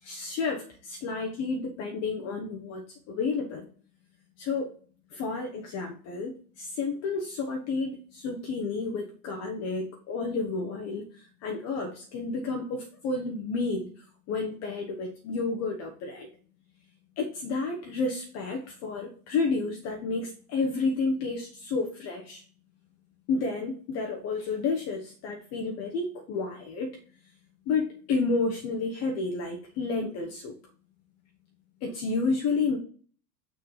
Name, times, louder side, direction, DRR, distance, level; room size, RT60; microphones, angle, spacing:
voice 1, 0.0-3.7 4.4-4.7 5.1-16.3 17.2-22.4 23.3-26.9 27.7-30.5 31.8-32.8, left 4 dB, 30° left, 1 dB, 1.1 m, -31 dB
6.3 x 3.6 x 4.8 m, 0.43 s
hypercardioid pair, 110°, 49 cm